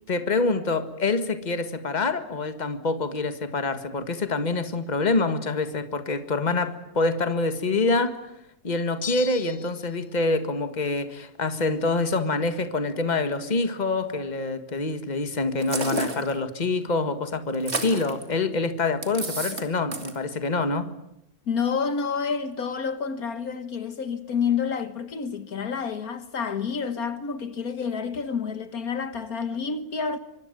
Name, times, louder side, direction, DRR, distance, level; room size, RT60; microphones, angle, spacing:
voice 1, 0.1-8.2 8.6-20.9, left 3 dB, 30° left, 1.8 m, -26 dB
sound 1, 9.0-10.0, left 6 dB, 50° left, 1.8 m, -36 dB
sound 2, 15.6-16.3 17.5-18.2 19.0-19.6 19.9-20.2, right 3 dB, 45° right, 2.8 m, -31 dB
voice 2, 21.5-30.2, left 6 dB, 70° left, 1.8 m, -29 dB
25.0 x 25.0 x 9.2 m
omnidirectional pair, 1.6 m